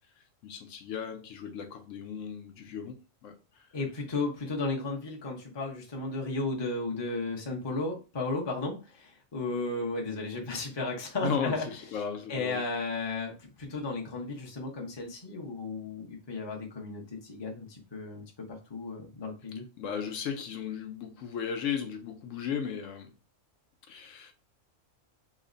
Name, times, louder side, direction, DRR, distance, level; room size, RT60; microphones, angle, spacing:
voice 1, 0.4-3.0 3.2-3.3 11.2-12.6 19.8-23.1 23.9-24.3, left 7 dB, 75° left, 0.9 m, -35 dB
voice 2, 3.7-11.7 12.3-19.6, left 3 dB, 25° left, 0.7 m, -34 dB
3.1 x 2.1 x 3.8 m
omnidirectional pair, 1.4 m